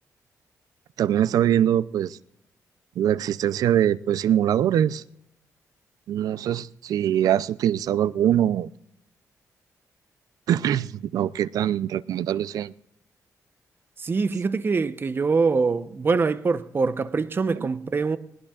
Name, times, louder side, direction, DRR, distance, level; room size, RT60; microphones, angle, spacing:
voice 1, 1.0-2.2 3.0-5.0 6.1-8.7 10.5-12.7 17.6-17.7, right 10 dB, 85° right, 0.5 m, -23 dB
voice 2, 14.0-18.2, right 4 dB, 35° right, 0.8 m, -24 dB
20.5 x 19.0 x 2.4 m
cardioid pair, 105°, 6 cm